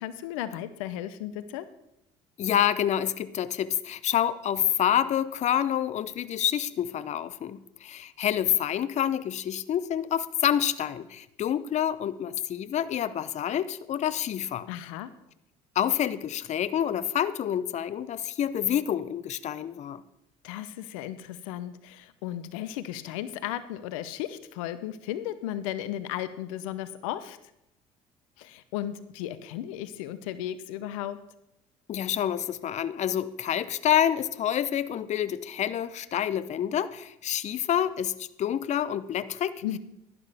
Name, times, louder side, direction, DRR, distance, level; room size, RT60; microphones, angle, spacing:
voice 1, 0.0-1.7 14.7-15.1 20.4-27.4 28.4-31.2 39.6-39.8, left 12 dB, 80° left, 14 dB, 0.7 m, -35 dB
voice 2, 2.4-14.7 15.8-20.0 31.9-39.6, left 10 dB, 45° left, 15 dB, 0.6 m, -28 dB
11.5 x 11.0 x 3.4 m, 0.83 s
hypercardioid pair, 70°, 17 cm